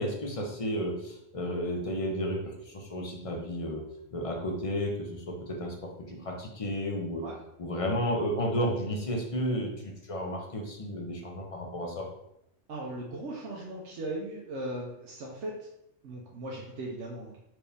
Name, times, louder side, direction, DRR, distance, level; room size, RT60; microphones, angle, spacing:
voice 1, 0.0-7.3 7.6-12.1, equal, 40° left, 0 dB, 0.6 m, -32 dB
voice 2, 12.7-15.5 16.0-17.4, right 1 dB, 85° right, -3 dB, 1.0 m, -38 dB
4.4 x 2.7 x 3.3 m, 0.81 s
omnidirectional pair, 1.2 m